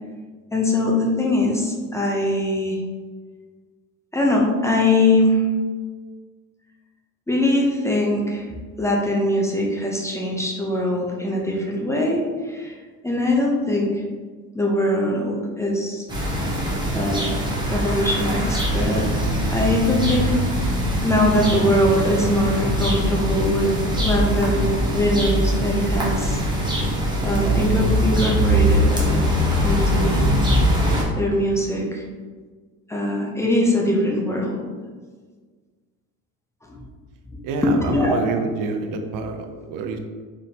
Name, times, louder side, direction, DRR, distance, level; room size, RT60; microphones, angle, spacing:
voice 1, 0.5-2.8 4.1-5.4 7.3-8.5 8.8-12.7 13.0-14.0 14.5-16.1 16.9-17.4 17.7-19.1 19.5-23.8 24.0-26.4 27.2-29.2 29.6-30.2 31.2-32.0 32.9-34.6 37.6-38.2, left 1 dB, 10° left, -2 dB, 0.6 m, -22 dB
sound 1, 16.1-31.0, equal, 10° right, 1.0 m, -22 dB
voice 2, 37.4-40.0, right 4 dB, 65° right, 5 dB, 0.5 m, -27 dB
3.9 x 3.5 x 2.8 m, 1.5 s
cardioid pair, 110°, 35 cm